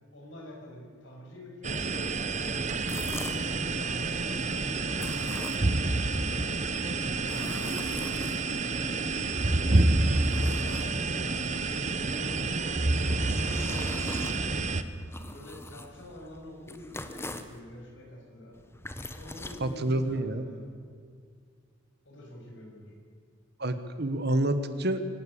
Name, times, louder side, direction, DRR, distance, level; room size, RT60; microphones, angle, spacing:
voice 1, 0.1-1.9 2.5-5.2 6.3-7.0 7.2-7.9 8.9-14.6 15.3-18.6 19.2-20.6 22.0-22.9, left 1 dB, 65° left, -1 dB, 6.7 m, -47 dB
sound 1, 1.6-14.8, right 3 dB, 35° right, 0.9 m, -28 dB
sound 2, 2.7-3.6 4.9-5.9 6.9-8.7 9.4-11.3 12.7-17.6 18.5-20.2, left 2 dB, 10° left, 1.0 m, -43 dB
voice 2, 19.6-20.4 23.6-25.0, right 1 dB, 55° right, 10 dB, 1.3 m, -28 dB
25.0 x 12.5 x 8.6 m, 2.1 s
head